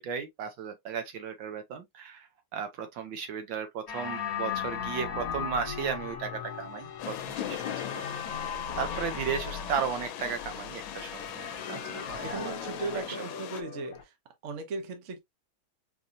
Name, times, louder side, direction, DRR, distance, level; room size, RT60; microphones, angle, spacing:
voice 1, 0.0-8.0 8.8-12.5 13.2-13.3, right 7 dB, 70° right, 1.5 m, -35 dB
sound 1, 3.9-14.0, left 7 dB, 60° left, 1.0 m, -38 dB
sound 2, 7.0-13.6, left 11 dB, 75° left, 1.3 m, -39 dB
voice 2, 7.3-7.8 11.7-14.1 14.4-15.2, right 3 dB, 50° right, 1.0 m, -38 dB
4.7 x 2.7 x 2.5 m
omnidirectional pair, 2.2 m